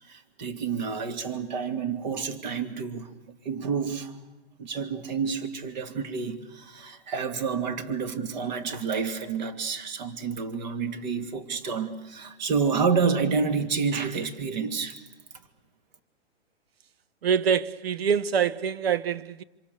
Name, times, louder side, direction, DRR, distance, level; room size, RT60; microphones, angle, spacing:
voice 1, 0.1-3.1 3.4-4.1 4.6-15.0, right 5 dB, 40° right, 2.7 m, -29 dB
voice 2, 17.2-19.4, right 7 dB, 60° right, 1.2 m, -25 dB
26.0 x 26.0 x 6.9 m
hypercardioid pair, 165°, 34 cm